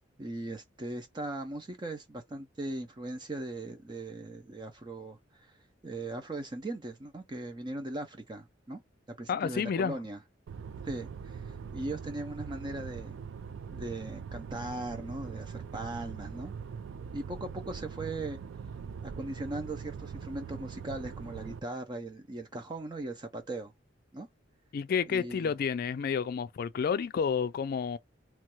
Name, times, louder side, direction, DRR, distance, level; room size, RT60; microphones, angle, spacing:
voice 1, 0.2-5.6 5.8-8.8 9.2-10.2 10.8-13.2 13.7-16.5 17.1-18.4 19.0-23.7 24.1-24.3 25.1-25.5, right 2 dB, 25° right, 0.5 m, -39 dB
voice 2, 9.3-10.0 24.7-28.0, left 6 dB, 55° left, 0.3 m, -30 dB
sound 1, 10.5-21.6, right 6 dB, 85° right, 0.4 m, -42 dB
3.0 x 2.2 x 3.0 m
head